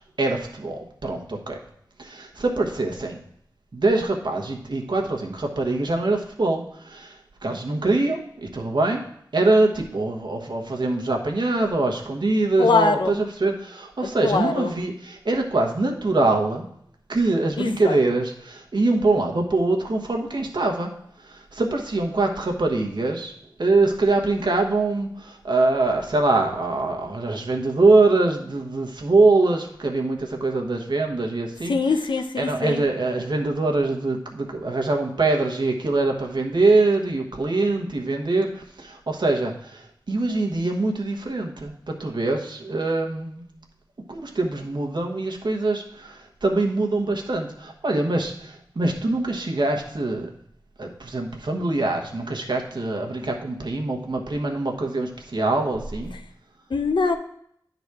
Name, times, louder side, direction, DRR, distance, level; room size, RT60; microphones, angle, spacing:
voice 1, 0.2-1.6 2.0-3.2 3.7-7.1 7.4-9.0 9.3-16.7 17.1-20.9 21.2-23.3 23.6-31.7 32.4-43.4 44.1-50.3 50.8-56.1, right 2 dB, 70° right, 1 dB, 1.2 m, -23 dB
voice 2, 12.6-13.1 14.0-14.7 17.6-18.0 31.7-32.8 56.1-56.2 56.7-57.1, left 4 dB, 90° left, 5 dB, 0.7 m, -23 dB
10.0 x 4.1 x 4.7 m, 0.69 s
wide cardioid pair, 60°, 8 cm